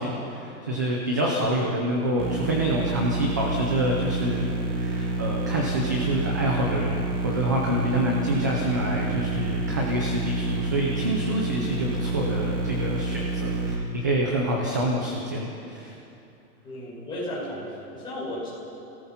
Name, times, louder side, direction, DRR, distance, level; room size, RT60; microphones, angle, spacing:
voice 1, 0.0-16.0, right 1 dB, 15° right, -2 dB, 0.5 m, -27 dB
sound 1, 2.2-13.7, right 2 dB, 35° right, 2.6 m, -28 dB
voice 2, 16.6-18.5, left 1 dB, 10° left, -8 dB, 6.2 m, -34 dB
29.0 x 18.0 x 5.7 m, 2.8 s
supercardioid pair, 180°, 45 cm